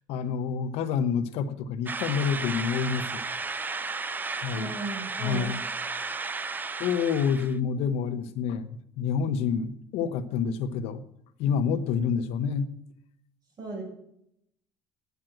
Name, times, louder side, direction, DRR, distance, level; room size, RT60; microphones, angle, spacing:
voice 1, 0.1-3.2 4.4-4.7 5.2-5.6 6.8-11.0 11.4-12.7, left 6 dB, 75° left, 10 dB, 1.0 m, -28 dB
sound 1, 1.9-7.6, right 4 dB, 15° right, 0.5 m, -34 dB
voice 2, 4.5-5.6 13.6-13.8, right 3 dB, 40° right, 0 dB, 6.2 m, -36 dB
9.5 x 9.2 x 9.0 m, 0.76 s
cardioid pair, 135°, 11 cm